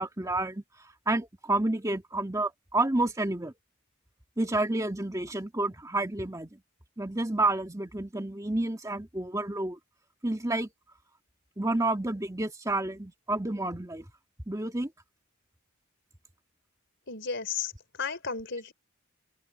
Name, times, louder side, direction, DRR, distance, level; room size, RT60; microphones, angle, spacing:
voice 1, 0.0-3.5 4.4-6.6 7.0-9.8 10.2-10.7 11.6-14.0 14.5-14.9, right 2 dB, 15° right, 1.8 m, -30 dB
voice 2, 17.1-17.7 18.0-18.7, left 5 dB, 60° left, 3.9 m, -33 dB
open air
head